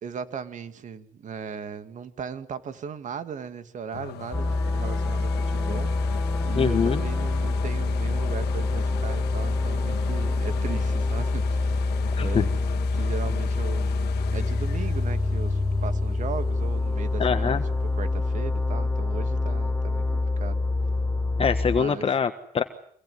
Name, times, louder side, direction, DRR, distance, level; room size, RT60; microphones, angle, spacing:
voice 1, 0.0-12.5 12.9-13.9 14.3-17.6 18.0-20.6 21.7-22.1, right 6 dB, 45° right, 11 dB, 2.5 m, -37 dB
sound 1, 3.9-17.6 18.1-18.2, left 11 dB, 75° left, 2.0 m, -39 dB
sound 2, 4.3-21.8, left 3 dB, 5° left, 1.7 m, -26 dB
voice 2, 6.5-7.0 12.2-12.4 17.2-17.6 21.4-22.6, left 6 dB, 35° left, 9 dB, 1.5 m, -24 dB
26.5 x 22.0 x 9.6 m, 0.63 s
cardioid pair, 110°, 17 cm